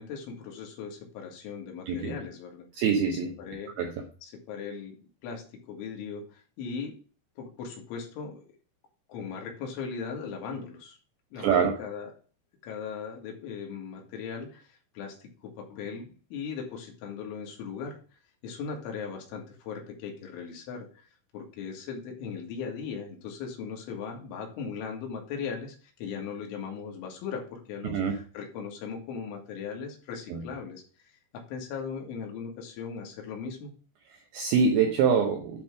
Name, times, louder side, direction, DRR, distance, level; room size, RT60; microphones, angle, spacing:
voice 1, 0.0-2.7 3.4-3.7 4.2-7.0 7.4-8.5 9.1-11.0 11.3-12.1 12.6-18.0 18.4-21.1 21.3-33.7, left 6 dB, 80° left, 1 dB, 4.2 m, -38 dB
voice 2, 2.7-3.4 3.8-4.0 11.4-11.8 27.8-28.2 30.3-30.5 34.1-35.6, right 6 dB, 80° right, 3 dB, 2.2 m, -25 dB
10.5 x 3.5 x 6.2 m, 0.40 s
omnidirectional pair, 5.4 m